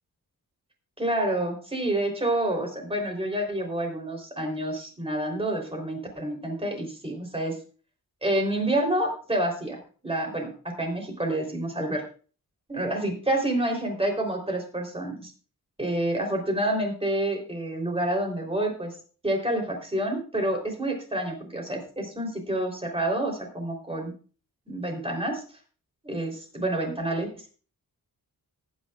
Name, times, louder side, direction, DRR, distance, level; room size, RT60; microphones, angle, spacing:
voice 1, 1.0-7.6 8.2-10.5 10.8-12.0 12.7-15.3 15.8-19.0 19.2-24.1 24.7-25.4 26.0-27.4, right 1 dB, 15° right, 2 dB, 3.6 m, -28 dB
19.0 x 9.6 x 2.4 m, 0.38 s
wide cardioid pair, 125°, 36 cm